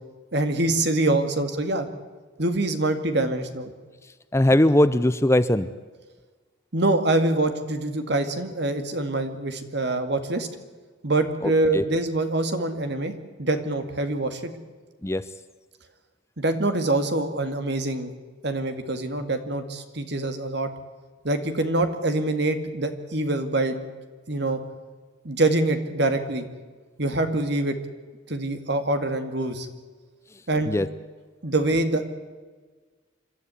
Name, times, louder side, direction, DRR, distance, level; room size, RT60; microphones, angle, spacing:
voice 1, 0.3-1.9 2.4-3.7 6.7-10.5 11.0-14.5 16.4-18.1 18.4-20.7 21.2-23.8 24.3-24.6 25.2-26.4 27.0-27.8 28.3-29.7 30.5-30.8 31.4-32.1, right 2 dB, 60° right, 8 dB, 2.2 m, -25 dB
voice 2, 4.3-5.7 11.4-11.8 15.0-15.2 30.7-30.9, left 1 dB, 15° left, 14 dB, 0.6 m, -20 dB
26.5 x 12.5 x 9.8 m, 1.4 s
head